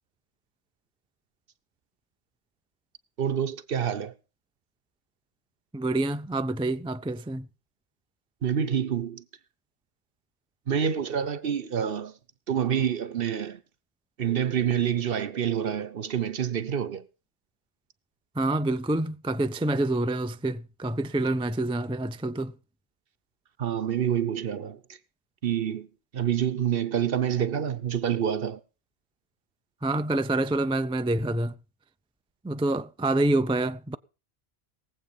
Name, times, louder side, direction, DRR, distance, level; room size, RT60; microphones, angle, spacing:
voice 1, 3.2-4.1 8.4-9.2 10.7-12.1 12.5-13.6 14.2-17.0 23.6-24.8 25.4-25.9 26.1-28.6, right 8 dB, 65° right, 1.1 m, -27 dB
voice 2, 5.7-7.5 18.4-22.5 29.8-31.5 32.4-34.0, right 2 dB, 10° right, 0.3 m, -27 dB
20.0 x 8.0 x 5.5 m
omnidirectional pair, 1.1 m